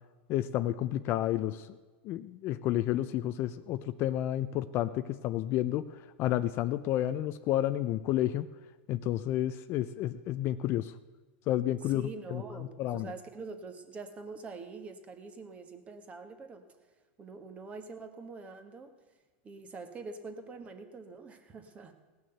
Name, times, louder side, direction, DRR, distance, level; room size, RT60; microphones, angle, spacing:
voice 1, 0.3-1.7 2.0-5.9 6.2-8.5 8.9-10.9 11.5-12.4 12.8-13.1, left 13 dB, 40° left, 12 dB, 0.5 m, -30 dB
voice 2, 11.8-16.6 17.2-18.9 19.4-21.9, right 4 dB, 20° right, 7 dB, 1.4 m, -45 dB
17.5 x 6.3 x 7.9 m, 1.3 s
supercardioid pair, 140°, 6 cm